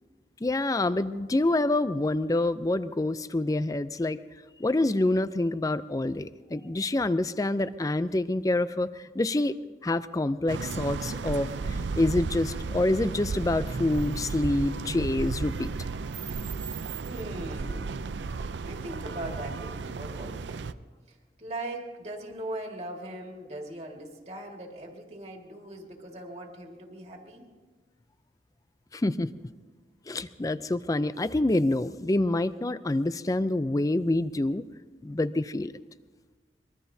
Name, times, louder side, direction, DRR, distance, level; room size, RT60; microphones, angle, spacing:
voice 1, 0.4-4.2 4.6-15.7 28.9-29.3 30.1-34.7 35.0-35.7, left 2 dB, 20° left, 14 dB, 0.4 m, -27 dB
sound 1, 10.5-20.7, right 4 dB, 85° right, 0.5 m, -34 dB
voice 2, 17.0-20.7 21.1-27.5, right 1 dB, 35° right, 1 dB, 1.9 m, -40 dB
24.0 x 21.5 x 2.7 m, 1.4 s
head